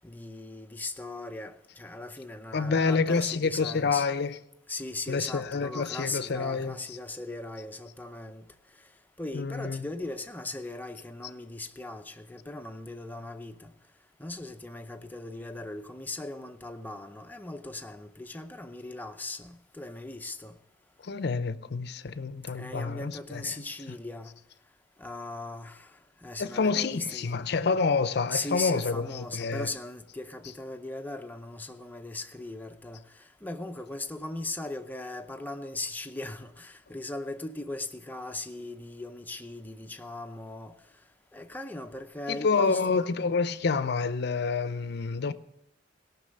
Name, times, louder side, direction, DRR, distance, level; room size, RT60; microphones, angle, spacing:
voice 1, 0.0-4.1 4.7-8.5 9.2-13.7 14.2-20.5 22.5-24.4 25.0-27.4 28.3-40.8 41.3-43.0, left 2 dB, 10° left, 0.6 m, -38 dB
voice 2, 2.5-4.4 5.1-6.8 9.3-9.8 21.0-23.6 26.4-29.7 42.3-45.3, left 4 dB, 60° left, 0.6 m, -28 dB
17.5 x 6.0 x 6.4 m
head